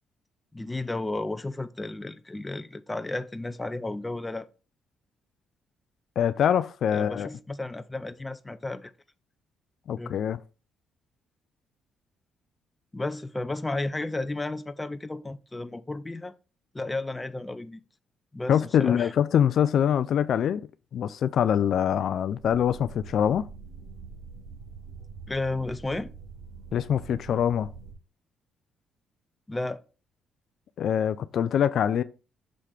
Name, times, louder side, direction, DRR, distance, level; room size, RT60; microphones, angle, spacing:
voice 1, 0.5-4.5 6.9-8.9 10.0-10.1 12.9-16.3 16.7-17.8 18.3-19.1 25.3-26.1 29.5-29.8, left 2 dB, 15° left, 0.6 m, -33 dB
voice 2, 6.2-7.3 9.9-10.4 18.5-20.6 20.9-23.5 26.7-27.7 30.8-32.0, left 9 dB, 65° left, 0.4 m, -24 dB
sound 1, 22.4-27.9, right 5 dB, 70° right, 2.3 m, -44 dB
6.3 x 3.3 x 5.9 m
cardioid pair, 90°, 0 cm